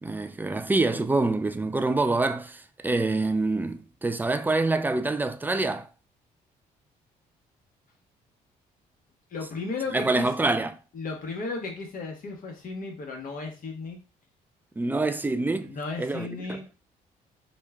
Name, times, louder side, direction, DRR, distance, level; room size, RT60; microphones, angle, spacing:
voice 1, 0.0-5.9 9.9-10.7 14.8-15.7 16.0-16.3, right 2 dB, 10° right, 0.4 m, -26 dB
voice 2, 9.3-10.3 10.9-14.0 15.6-16.7, left 3 dB, 55° left, 1.2 m, -34 dB
3.1 x 2.2 x 3.4 m
supercardioid pair, 65°, 17 cm